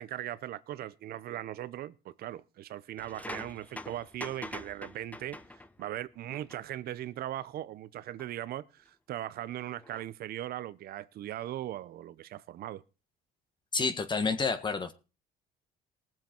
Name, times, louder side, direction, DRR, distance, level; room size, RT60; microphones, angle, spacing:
voice 1, 0.0-12.8, right 13 dB, 65° right, 0.8 m, -39 dB
sound 1, 3.0-5.9 6.3-6.6 8.2-8.3 9.8-10.0, left 2 dB, 10° left, 0.7 m, -44 dB
voice 2, 13.7-14.9, left 4 dB, 25° left, 1.6 m, -29 dB
20.0 x 7.5 x 4.5 m
cardioid pair, 110°, 17 cm